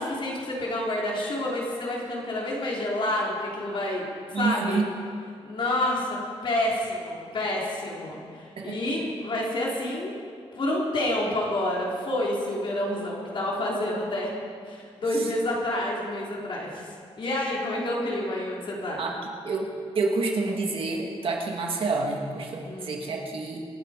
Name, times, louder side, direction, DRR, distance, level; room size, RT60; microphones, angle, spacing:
voice 1, 0.0-4.1 4.3-4.9 5.4-6.2 6.4-10.1 10.6-14.3 14.6-16.9 17.2-19.0 21.7-21.9 22.6-23.0, left 1 dB, 55° left, -3 dB, 3.7 m, -28 dB
voice 2, 4.3-4.8 8.6-8.8 15.2-15.3 19.0-19.2 19.4-23.6, right 3 dB, 60° right, 1 dB, 2.1 m, -28 dB
25.0 x 9.6 x 5.2 m, 2.2 s
wide cardioid pair, 175°, 11 cm